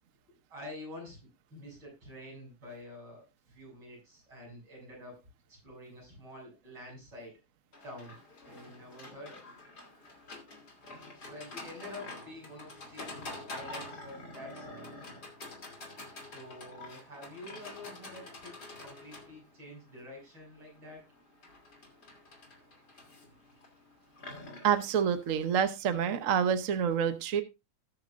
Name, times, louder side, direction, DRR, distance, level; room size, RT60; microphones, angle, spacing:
voice 1, 0.3-5.2 5.5-7.4 7.8-8.2 8.5-9.4 11.2-14.9 16.1-21.0, left 1 dB, 75° right, -2 dB, 8.7 m, -48 dB
Livestock farm animals working animals, 7.7-25.8, left 2 dB, 50° left, 3.4 m, -47 dB
voice 2, 24.6-27.4, right 8 dB, 50° right, 9 dB, 1.1 m, -27 dB
19.0 x 6.6 x 2.6 m, 0.24 s
omnidirectional pair, 2.2 m